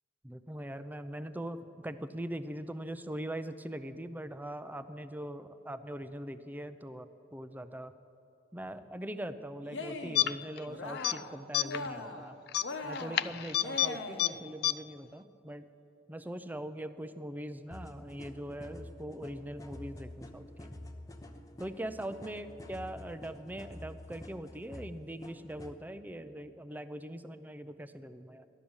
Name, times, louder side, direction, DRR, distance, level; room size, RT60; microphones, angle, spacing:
voice 1, 0.2-8.0 8.5-12.4 12.8-15.7 16.1-20.7 21.6-28.5, right 1 dB, 10° right, 11 dB, 0.5 m, -41 dB
Cheering, 9.6-10.3 10.6-11.3 11.6-12.3 12.6-14.4, left 2 dB, 80° left, 1.1 m, -40 dB
sound 1, 10.2-10.6 10.9-11.2 11.5-11.9 12.5-13.9 14.2-14.3 14.6-14.7, left 13 dB, 60° left, 0.3 m, -29 dB
sound 2, 17.7-25.8, left 1 dB, 20° left, 0.8 m, -48 dB
15.0 x 11.5 x 7.1 m, 2.7 s
head